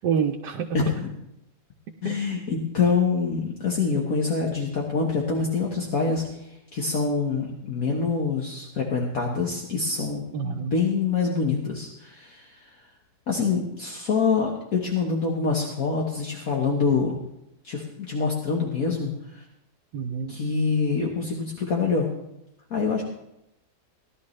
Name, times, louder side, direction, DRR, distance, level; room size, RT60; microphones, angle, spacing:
voice 1, 0.0-0.8 2.0-2.2 10.3-10.7 19.9-20.5, right 7 dB, 85° right, 1 dB, 1.4 m, -27 dB
voice 2, 0.7-1.1 2.0-6.2 6.7-12.8 13.3-17.1 17.6-19.4 20.3-22.1 22.7-23.0, left 4 dB, 60° left, -1 dB, 1.7 m, -25 dB
17.5 x 11.5 x 3.2 m, 0.85 s
omnidirectional pair, 1.8 m